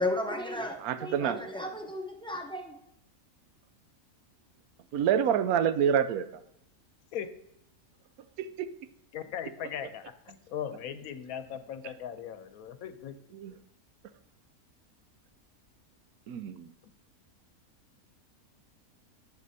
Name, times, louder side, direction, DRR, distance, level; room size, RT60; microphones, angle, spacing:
voice 1, 0.0-2.8, left 1 dB, 5° left, 2 dB, 0.5 m, -34 dB
voice 2, 0.8-1.4 4.9-6.3 8.4-8.7 13.4-13.5 16.3-16.7, right 8 dB, 90° right, 12 dB, 1.1 m, -27 dB
voice 3, 9.1-13.1, left 9 dB, 80° left, 10 dB, 1.1 m, -39 dB
10.5 x 7.5 x 2.7 m, 0.76 s
omnidirectional pair, 1.5 m